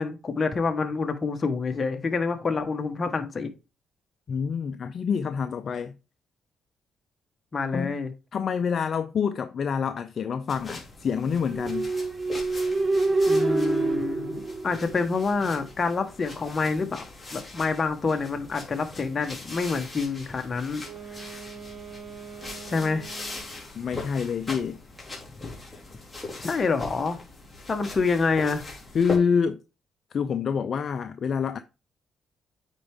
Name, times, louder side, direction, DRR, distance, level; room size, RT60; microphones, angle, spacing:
voice 1, 0.0-3.5 7.5-8.1 13.3-17.0 17.3-20.8 21.1-21.3 22.7-23.1 25.4-25.5 26.4-27.2 27.7-28.6, left 4 dB, 35° left, 1.4 m, -27 dB
voice 2, 4.3-6.0 7.7-8.0 8.3-11.9 23.7-24.8 28.9-29.6 30.1-31.6, left 6 dB, 55° left, 0.6 m, -27 dB
sound 1, 10.5-29.2, left 2 dB, 15° left, 3.8 m, -41 dB
sound 2, 11.5-15.3, right 3 dB, 30° right, 0.6 m, -26 dB
Wind instrument woodwind instrument, 20.8-23.7, right 6 dB, 45° right, 2.2 m, -43 dB
9.1 x 4.5 x 3.7 m
cardioid pair, 90°, 0 cm